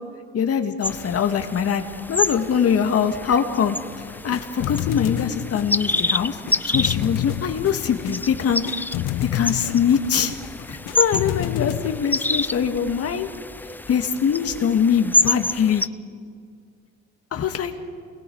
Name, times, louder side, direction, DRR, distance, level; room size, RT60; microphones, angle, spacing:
voice 1, 0.3-1.8 2.1-3.8 4.2-6.4 6.6-8.6 9.2-10.3 10.7-13.3 13.9-15.8 17.3-17.7, left 7 dB, 45° left, 6 dB, 2.1 m, -22 dB
sound 1, 0.8-15.9, left 2 dB, 5° left, 0.4 m, -28 dB
sound 2, 3.9-12.0, left 13 dB, 70° left, 1.0 m, -30 dB
28.5 x 20.5 x 4.8 m, 2.1 s
supercardioid pair, 90°, 33 cm